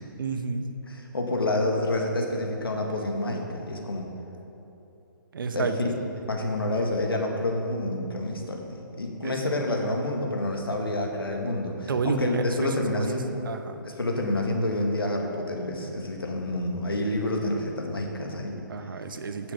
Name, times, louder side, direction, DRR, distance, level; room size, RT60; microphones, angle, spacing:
voice 1, 0.2-0.7 5.3-5.9 9.2-9.4 11.9-13.0 13.5-13.8 18.7-19.5, right 4 dB, 65° right, 8 dB, 1.0 m, -30 dB
voice 2, 0.9-4.1 5.5-5.7 6.3-13.3 13.8-18.6, left 1 dB, 90° left, 1 dB, 1.8 m, -28 dB
10.0 x 7.2 x 6.6 m, 2.9 s
hypercardioid pair, 135°, 12 cm